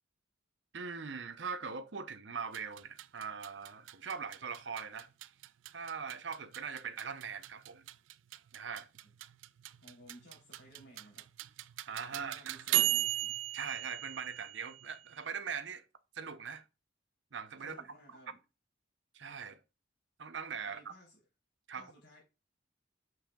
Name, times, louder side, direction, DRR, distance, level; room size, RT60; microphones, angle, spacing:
voice 1, 0.7-5.1 5.7-7.8 8.5-8.9 11.9-12.5 13.5-15.8 16.1-16.6 17.3-17.8 19.1-19.6 20.2-20.9 21.7-21.9, right 6 dB, 70° right, 0.7 m, -41 dB
sound 1, 2.4-15.2, right 16 dB, 90° right, 0.3 m, -38 dB
voice 2, 9.8-11.2 12.1-13.1 17.6-18.4 20.7-21.2 21.7-22.2, equal, 65° left, 3.3 m, -57 dB
6.4 x 6.3 x 2.3 m
head